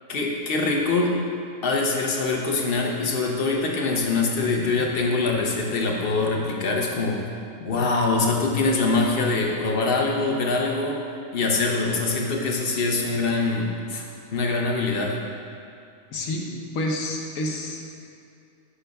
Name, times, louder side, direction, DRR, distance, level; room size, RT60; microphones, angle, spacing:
voice 1, 0.1-1.1 1.6-7.2 7.6-11.0 11.3-14.0 14.3-15.2, left 3 dB, 50° left, 0 dB, 0.8 m, -24 dB
voice 2, 16.1-17.8, left 1 dB, 80° left, 0 dB, 1.2 m, -29 dB
9.9 x 5.1 x 2.3 m, 2.4 s
omnidirectional pair, 1.4 m